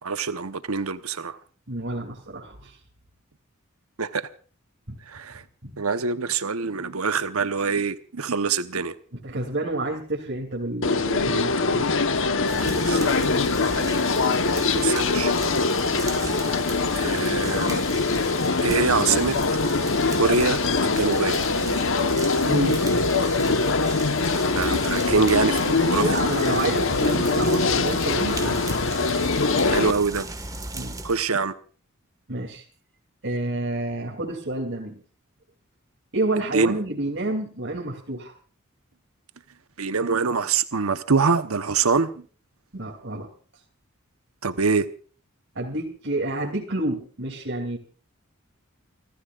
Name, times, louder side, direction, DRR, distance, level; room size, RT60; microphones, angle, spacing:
voice 1, 0.0-1.4 4.0-4.3 5.1-5.4 5.8-8.9 12.2-13.4 14.7-15.3 16.9-17.8 18.6-19.4 20.2-21.4 24.5-26.0 29.7-30.2 31.0-31.5 36.5-36.8 39.8-42.1 44.4-44.9, right 4 dB, 85° right, 1.0 m, -24 dB
voice 2, 1.7-2.8 4.9-5.0 5.6-5.7 9.1-11.9 22.4-22.8 26.0-28.7 30.7-31.0 32.3-32.6 33.2-35.0 36.1-38.3 42.7-43.3 45.5-47.8, right 2 dB, 60° right, 2.9 m, -29 dB
sound 1, 10.8-29.9, left 3 dB, 65° left, 1.2 m, -23 dB
sound 2, 12.5-31.2, right 2 dB, 15° right, 1.7 m, -36 dB
30.0 x 14.0 x 2.5 m
head